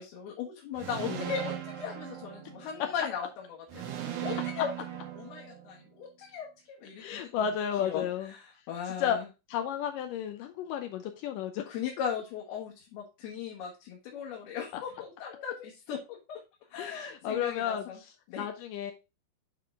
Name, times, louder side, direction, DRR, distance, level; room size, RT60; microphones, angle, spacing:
voice 1, 0.0-3.8 4.2-4.7 5.1-7.5 7.8-8.4 8.7-9.3 11.7-16.4 16.7-18.0 18.3-18.5, left 7 dB, 75° left, -2 dB, 3.2 m, -38 dB
sound 1, 0.8-2.9 3.7-5.9, right 10 dB, 65° right, 2.1 m, -38 dB
voice 2, 7.0-8.3 9.0-9.2 9.5-11.7 16.8-18.9, left 9 dB, 90° left, 6 dB, 1.9 m, -33 dB
9.4 x 3.7 x 3.5 m, 0.27 s
omnidirectional pair, 4.7 m